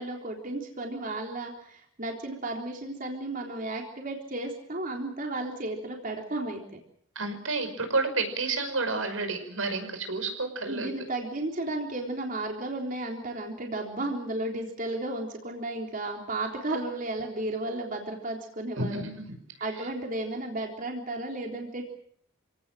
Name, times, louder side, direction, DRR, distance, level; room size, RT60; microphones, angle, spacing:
voice 1, 0.0-6.6 10.7-19.0 19.6-21.8, right 2 dB, 40° right, 1 dB, 3.8 m, -33 dB
voice 2, 7.2-10.9 18.8-19.3 19.8-19.9, right 3 dB, 85° right, 7 dB, 5.7 m, -30 dB
27.5 x 18.0 x 7.7 m, 0.68 s
head